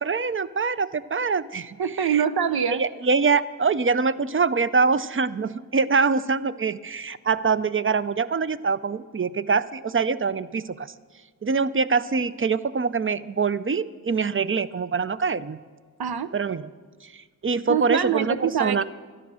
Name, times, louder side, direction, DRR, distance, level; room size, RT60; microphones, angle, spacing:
voice 1, 0.0-1.8 2.1-2.2 2.7-10.9 11.4-15.6 16.3-16.7 17.1-18.8, right 5 dB, 35° right, 15 dB, 0.5 m, -24 dB
voice 2, 1.8-2.8 16.0-16.3 17.7-18.8, right 8 dB, 80° right, 12 dB, 0.6 m, -24 dB
12.0 x 11.0 x 6.3 m, 1.5 s
wide cardioid pair, 45°, 37 cm